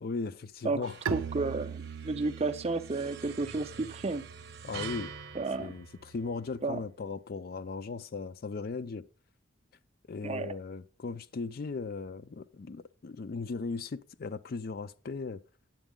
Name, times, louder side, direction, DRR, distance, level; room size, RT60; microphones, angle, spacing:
voice 1, 0.0-1.0 4.6-5.1 5.6-9.1 10.1-15.4, left 4 dB, 45° left, 0.4 m, -37 dB
sound 1, 0.8-6.6, right 6 dB, 50° right, 0.8 m, -47 dB
voice 2, 1.1-4.2 5.4-5.7 6.6-6.8 10.2-10.5, right 3 dB, 30° right, 0.5 m, -32 dB
Bowed string instrument, 1.1-6.6, right 7 dB, 85° right, 0.5 m, -42 dB
9.0 x 8.1 x 3.7 m
head